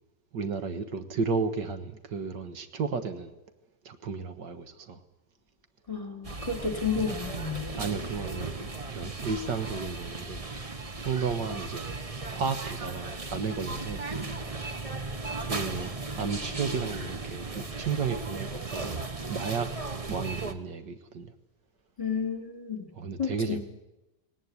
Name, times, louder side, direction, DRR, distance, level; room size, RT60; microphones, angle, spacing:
voice 1, 0.3-3.3 3.9-5.0 7.7-10.4 11.0-12.0 12.3-14.1 15.4-19.0 19.3-19.7 20.1-21.3 23.0-23.6, right 5 dB, 75° right, 9 dB, 2.0 m, -33 dB
voice 2, 5.9-7.7 22.0-22.9 23.2-23.6, left 5 dB, 20° left, 4 dB, 3.1 m, -31 dB
sound 1, 6.2-20.5, right 3 dB, 25° right, 1.0 m, -36 dB
19.0 x 18.5 x 9.7 m, 0.97 s
omnidirectional pair, 1.9 m